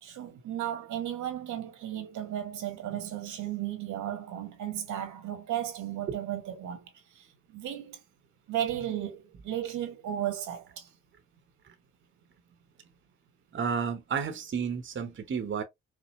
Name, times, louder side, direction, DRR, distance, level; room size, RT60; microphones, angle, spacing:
voice 1, 0.0-8.0 8.5-10.9, right 11 dB, 80° right, 1.4 m, -35 dB
voice 2, 13.5-15.6, right 6 dB, 40° right, 0.9 m, -31 dB
5.1 x 2.1 x 2.9 m
cardioid pair, 90°, 30 cm